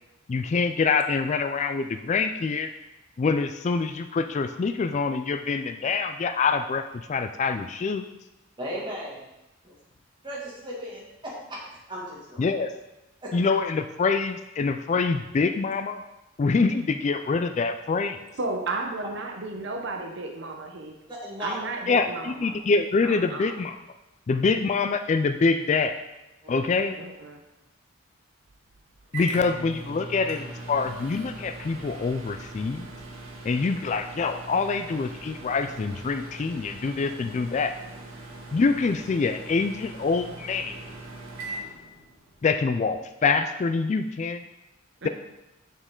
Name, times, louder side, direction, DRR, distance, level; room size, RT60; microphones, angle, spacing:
voice 1, 0.3-2.7 3.2-8.2 12.4-12.7 13.3-16.0 16.4-18.2 21.9-23.8 24.3-26.0 26.5-27.0 29.1-32.9 33.4-37.7 38.5-40.8 42.4-44.4, left 4 dB, 35° left, 9 dB, 0.3 m, -25 dB
voice 2, 8.6-9.2 9.6-9.8 10.2-11.6 11.9-12.4 13.2-13.4 21.1-21.6 26.4-26.7 45.0-45.1, equal, 25° right, -5 dB, 2.1 m, -36 dB
voice 3, 18.4-21.0 21.4-22.6 23.0-23.6 26.9-27.4 45.0-45.1, right 2 dB, 60° right, 2 dB, 0.8 m, -33 dB
Microwave oven, 28.5-42.5, right 2 dB, 85° right, 1.7 m, -41 dB
7.1 x 6.5 x 3.7 m, 0.94 s
head